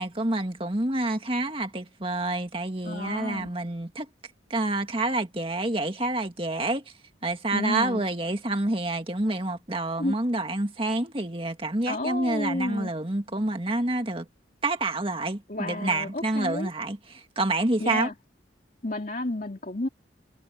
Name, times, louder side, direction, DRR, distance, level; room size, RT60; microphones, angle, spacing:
voice 1, 0.0-4.1 4.5-6.8 7.2-14.3 14.6-18.1, right 2 dB, 30° right, 2.0 m, -28 dB
voice 2, 2.8-3.5 7.5-8.0 10.0-10.1 11.9-12.9 15.5-16.7 17.8-18.1 18.8-19.9, left 1 dB, 45° left, 2.7 m, -31 dB
head